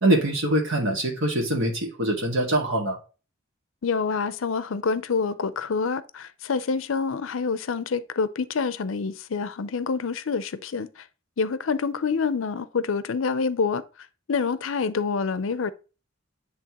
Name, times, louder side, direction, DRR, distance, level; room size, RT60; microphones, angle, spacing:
voice 1, 0.0-3.0, right 1 dB, 65° right, 1.7 m, -23 dB
voice 2, 3.8-10.9 11.4-13.8 14.3-15.7, left 5 dB, 70° left, 0.5 m, -27 dB
10.0 x 3.4 x 2.9 m
head